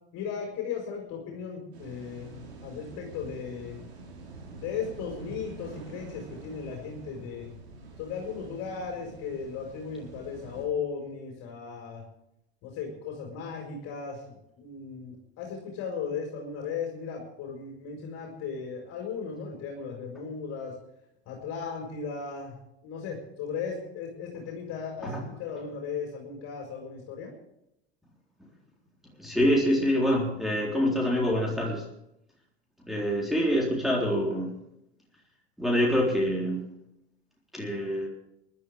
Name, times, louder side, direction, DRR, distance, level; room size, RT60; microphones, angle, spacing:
voice 1, 0.1-3.8 4.6-7.5 8.0-12.0 12.6-20.8 21.2-27.3, left 6 dB, 50° left, 0 dB, 4.8 m, -36 dB
sound 1, 1.7-10.7, right 3 dB, 75° right, 5.0 m, -46 dB
voice 2, 29.2-31.8 32.9-34.5 35.6-36.7 37.5-38.1, equal, ahead, -4 dB, 3.9 m, -25 dB
23.5 x 12.0 x 3.5 m, 0.81 s
figure-of-eight pair, 80°, 32 cm